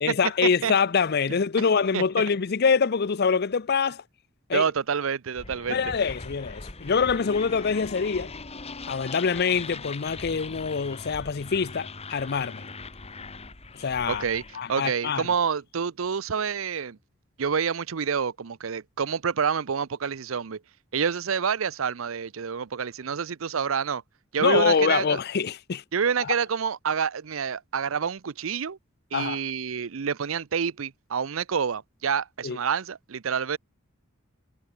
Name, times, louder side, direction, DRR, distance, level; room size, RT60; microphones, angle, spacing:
voice 1, 0.0-4.0 4.5-4.6 5.7-8.3 8.9-12.7 13.8-14.2 14.5-15.2 24.4-25.8 26.2-26.3 29.1-29.4 32.4-32.6, left 5 dB, 50° left, 0.6 m, -25 dB
voice 2, 4.5-5.8 14.1-14.4 14.7-17.0 17.4-20.6 20.9-24.0 24.3-25.2 25.9-28.8 29.1-33.6, right 6 dB, 80° right, 0.6 m, -28 dB
sound 1, 5.3-14.7, left 3 dB, 30° left, 1.9 m, -40 dB
head